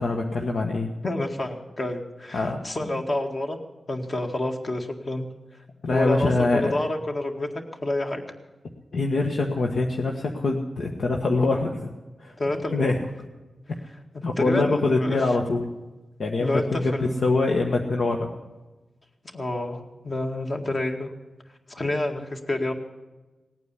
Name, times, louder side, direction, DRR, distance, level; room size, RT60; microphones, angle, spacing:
voice 1, 0.0-0.9 2.3-2.6 2.9-3.0 5.8-6.7 8.9-11.9 12.2-12.3 12.7-13.0 14.2-15.7 16.2-18.3, left 3 dB, 65° left, 1 dB, 1.4 m, -24 dB
voice 2, 1.0-3.6 3.9-5.3 5.9-7.5 7.8-8.2 12.4-13.1 14.4-15.2 16.4-17.3 19.3-21.1 21.7-22.7, left 1 dB, 35° left, 4 dB, 2.0 m, -28 dB
18.5 x 9.2 x 8.3 m, 1.1 s
wide cardioid pair, 120°, 0 cm